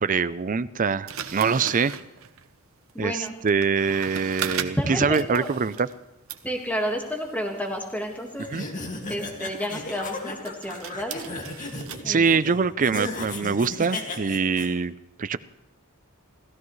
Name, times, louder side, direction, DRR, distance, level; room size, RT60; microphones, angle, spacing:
voice 1, 0.0-1.9 3.0-5.9 8.5-8.6 12.0-14.9 15.2-15.4, right 5 dB, 35° right, 14 dB, 0.5 m, -24 dB
sound 1, 1.1-6.0 6.3-12.0, right 8 dB, 65° right, 1.0 m, -39 dB
voice 2, 2.9-3.4 4.8-5.5 6.4-8.5 9.1-11.1 12.0-12.6, equal, 5° left, 1 dB, 1.7 m, -30 dB
sound 2, 8.4-14.7, left 2 dB, 35° left, 2.1 m, -35 dB
30.0 x 14.5 x 3.2 m, 1.0 s
head